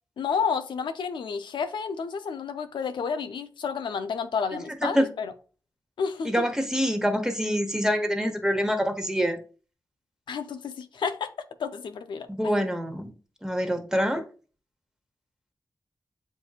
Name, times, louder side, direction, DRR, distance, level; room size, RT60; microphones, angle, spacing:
voice 1, 0.2-5.3 6.0-6.4 10.3-11.3 11.6-12.3, left 6 dB, 85° left, 0.4 m, -30 dB
voice 2, 6.2-9.4 12.3-13.1 13.4-14.2, equal, 5° right, 0.9 m, -25 dB
7.8 x 2.6 x 2.4 m
cardioid pair, 45°, 8 cm